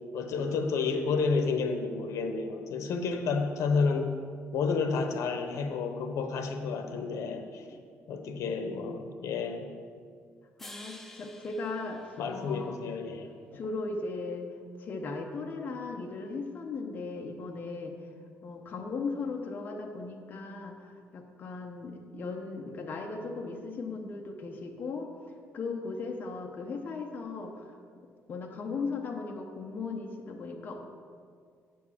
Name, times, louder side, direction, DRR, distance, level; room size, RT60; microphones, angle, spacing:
voice 1, 0.1-4.2 4.5-7.8 8.1-9.7 12.2-13.3, left 4 dB, 75° left, 6 dB, 0.9 m, -30 dB
voice 2, 10.6-12.8 13.5-14.5 14.8-17.9 18.4-25.1 25.5-27.7 28.3-30.8, left 3 dB, 35° left, 1 dB, 0.8 m, -37 dB
sound 1, 10.6-12.9, left 1 dB, 5° left, 0.4 m, -50 dB
9.2 x 4.5 x 7.3 m, 2.1 s
cardioid pair, 180°, 5 cm